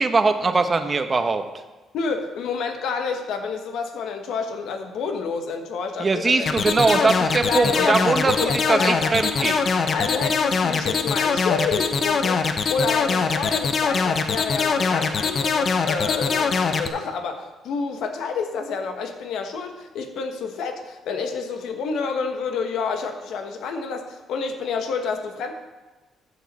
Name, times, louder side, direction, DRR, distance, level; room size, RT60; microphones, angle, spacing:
voice 1, 0.0-1.4 6.0-9.6, right 3 dB, 30° right, 8 dB, 0.9 m, -21 dB
voice 2, 1.9-6.5 7.0-7.1 7.4-9.5 9.9-25.5, left 5 dB, 80° left, 5 dB, 1.3 m, -29 dB
sound 1, 6.5-16.9, left 5 dB, 45° left, 0.8 m, -22 dB
14.0 x 7.1 x 4.2 m, 1.2 s
cardioid pair, 105°, 0 cm